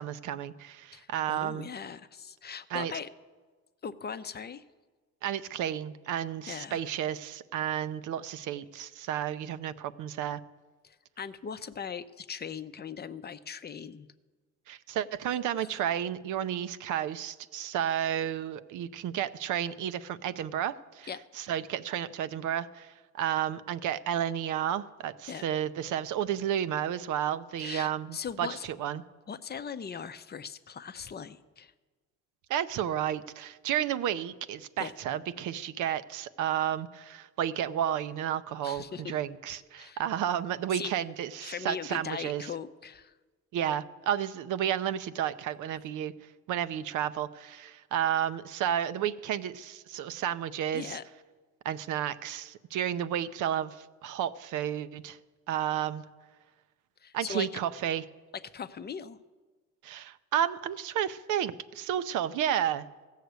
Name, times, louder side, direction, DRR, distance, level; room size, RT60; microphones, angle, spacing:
voice 1, 0.0-1.7 2.7-2.9 5.2-10.4 14.7-29.0 32.5-42.5 43.5-46.1 46.5-51.0 51.6-55.2 55.5-56.0 57.1-58.0 59.8-62.9, right 10 dB, 80° right, 13 dB, 0.6 m, -32 dB
voice 2, 0.9-3.1 3.8-4.6 6.5-6.8 10.8-14.1 21.1-21.2 25.3-25.4 27.6-28.7 29.3-31.7 34.8-34.9 38.6-39.2 39.7-40.0 40.7-40.9 41.4-43.1 50.7-51.0 57.0-57.5 58.3-59.2, left 7 dB, 35° left, 12 dB, 0.5 m, -39 dB
15.0 x 6.5 x 8.1 m, 1.3 s
cardioid pair, 90°, 30 cm